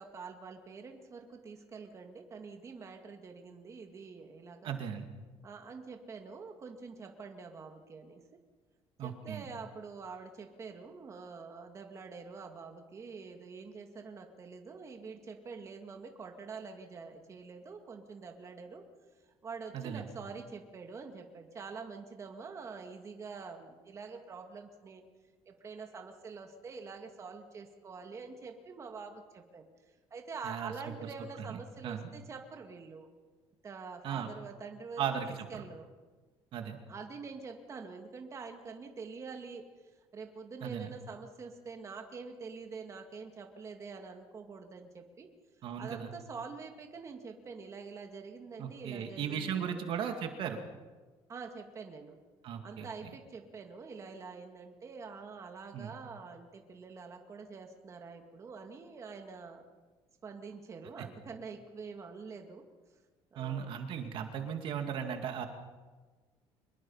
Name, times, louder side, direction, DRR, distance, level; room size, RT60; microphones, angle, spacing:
voice 1, 0.0-4.7 5.4-8.2 9.0-18.8 19.4-25.0 25.5-29.7 30.1-33.1 33.6-35.9 36.9-39.6 40.1-45.3 45.8-49.9 51.3-52.2 52.6-59.6 60.2-62.6 63.3-63.7, right 5 dB, 30° right, 4 dB, 2.1 m, -46 dB
voice 2, 4.6-5.1 9.0-9.5 19.7-20.0 30.4-30.7 31.5-32.1 34.0-34.3 35.0-35.6 36.5-36.8 40.6-40.9 45.6-46.1 48.6-50.6 52.4-52.9 55.7-55.9 63.4-65.5, right 8 dB, 55° right, 5 dB, 2.2 m, -37 dB
25.0 x 21.5 x 5.7 m, 1.3 s
cardioid pair, 150°, 10 cm